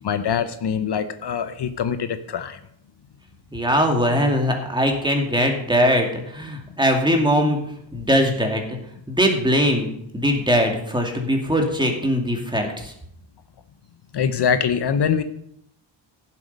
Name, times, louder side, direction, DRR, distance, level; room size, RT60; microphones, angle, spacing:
voice 1, 0.0-2.6 14.1-15.2, left 7 dB, 60° left, 10 dB, 0.9 m, -23 dB
voice 2, 3.5-8.8 9.1-12.9, equal, 10° right, 2 dB, 2.4 m, -21 dB
16.5 x 7.7 x 5.4 m, 0.73 s
wide cardioid pair, 135°, 47 cm